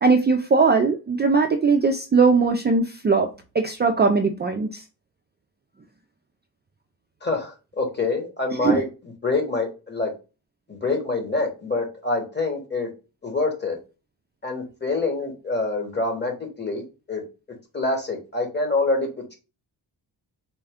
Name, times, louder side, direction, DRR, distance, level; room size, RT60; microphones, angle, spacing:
voice 1, 0.0-3.3 3.5-4.8 8.6-8.8, right 4 dB, 25° right, 4 dB, 0.4 m, -19 dB
voice 2, 7.2-10.1 10.7-12.9 13.2-13.8 14.4-17.2 17.7-19.4, left 3 dB, 25° left, 3 dB, 1.3 m, -26 dB
4.3 x 2.3 x 3.4 m, 0.31 s
cardioid pair, 95°, 42 cm